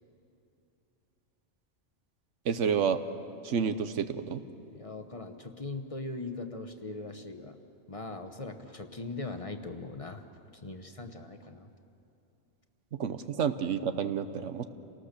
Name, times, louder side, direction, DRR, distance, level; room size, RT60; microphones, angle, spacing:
voice 1, 2.4-3.0 3.4-4.4 13.0-14.6, right 7 dB, 80° right, 11 dB, 1.2 m, -29 dB
voice 2, 4.7-7.6 7.9-10.2 10.6-11.7, left 3 dB, 30° left, 5 dB, 1.0 m, -40 dB
28.5 x 19.0 x 6.7 m, 2.8 s
omnidirectional pair, 1.2 m